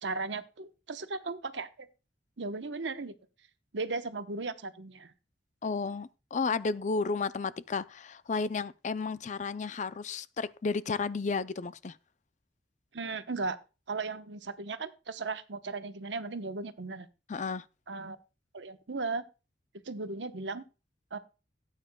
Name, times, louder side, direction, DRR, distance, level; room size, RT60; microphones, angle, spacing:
voice 1, 0.0-1.9 2.4-3.1 3.7-5.1 12.9-13.6 13.9-17.1 17.9-18.2 18.5-19.2 19.9-20.6 21.1-21.2, right 3 dB, 80° right, 1.0 m, -36 dB
voice 2, 5.6-12.0 17.3-17.6, left 4 dB, 40° left, 0.4 m, -32 dB
17.0 x 9.0 x 2.3 m
head